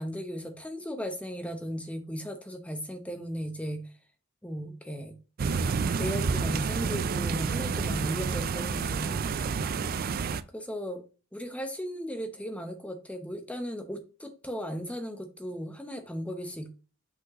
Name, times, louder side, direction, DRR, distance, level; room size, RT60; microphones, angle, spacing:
voice 1, 0.0-3.8 4.4-5.2 6.0-9.3 10.5-11.0 11.3-16.7, equal, 5° left, 6 dB, 0.7 m, -36 dB
sound 1, 5.4-10.4, right 5 dB, 40° right, 0.3 m, -29 dB
6.0 x 5.2 x 3.0 m, 0.34 s
head